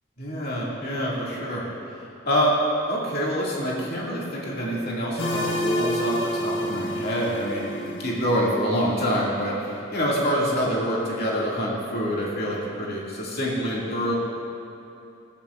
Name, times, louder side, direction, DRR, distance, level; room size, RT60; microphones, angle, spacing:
voice 1, 0.2-1.7 2.3-2.6 2.9-14.1, equal, 45° left, -5 dB, 2.3 m, -26 dB
sound 1, 5.2-8.9, equal, 65° left, 1.4 m, -29 dB
16.5 x 12.5 x 2.5 m, 2.8 s
head